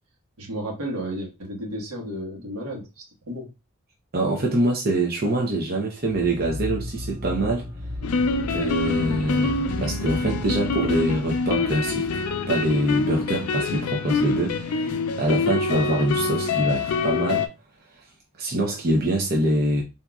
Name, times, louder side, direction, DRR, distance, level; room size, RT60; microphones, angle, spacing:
voice 1, 0.4-2.9 3.3-3.5, right 1 dB, 90° right, 1.4 m, -32 dB
voice 2, 4.1-7.7 8.5-17.5 18.4-19.8, right 1 dB, 45° right, 0.7 m, -25 dB
sound 1, 6.0-13.4, left 1 dB, 25° right, 1.1 m, -35 dB
sound 2, 8.0-17.5, left 4 dB, 85° left, 0.4 m, -25 dB
3.8 x 2.7 x 2.3 m
head